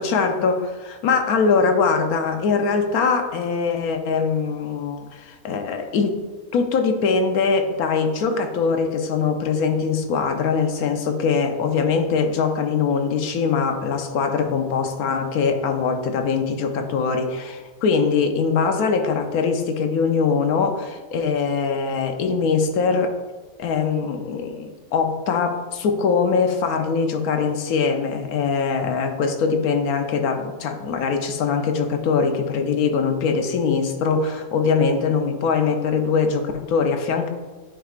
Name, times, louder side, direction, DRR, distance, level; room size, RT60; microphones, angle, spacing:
voice 1, 0.0-6.1 6.5-23.1 23.6-37.3, left 5 dB, 85° left, 6 dB, 1.2 m, -22 dB
10.0 x 4.7 x 2.4 m, 1.3 s
omnidirectional pair, 1.5 m